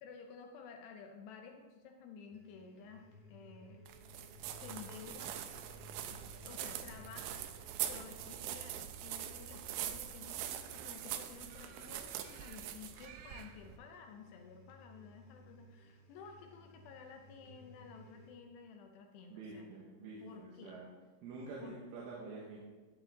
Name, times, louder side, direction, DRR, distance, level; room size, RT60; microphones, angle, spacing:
voice 1, 0.0-3.8 4.6-5.4 5.9-6.1 6.5-7.5 7.9-19.7 20.2-20.8 21.6-21.8, left 6 dB, 85° left, 3 dB, 2.4 m, -53 dB
sound 1, 2.3-18.3, equal, 60° left, 1.8 m, -58 dB
sound 2, 3.9-13.8, right 11 dB, 90° right, 2.4 m, -43 dB
voice 2, 19.3-20.9 21.2-22.6, right 3 dB, 75° right, -5 dB, 4.1 m, -47 dB
17.5 x 7.6 x 3.9 m, 1.3 s
omnidirectional pair, 5.9 m